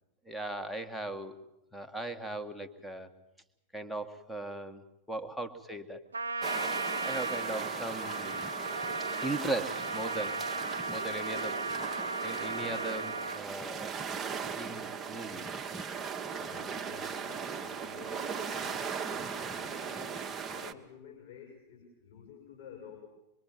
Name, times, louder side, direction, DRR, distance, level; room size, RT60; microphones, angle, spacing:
voice 1, 0.3-1.4 1.7-3.1 3.7-4.8 5.1-6.0 6.4-8.4 9.2-10.4 10.9-11.8 12.2-14.0 14.5-15.6, right 2 dB, ahead, 5 dB, 2.0 m, -38 dB
Trumpet, 6.1-13.4, right 3 dB, 75° right, 0.8 m, -36 dB
sound 1, 6.4-20.7, right 6 dB, 20° right, 1.6 m, -38 dB
voice 2, 16.3-23.1, left 7 dB, 50° left, 1 dB, 6.0 m, -51 dB
24.5 x 24.0 x 7.7 m, 0.89 s
figure-of-eight pair, 90°, 0 cm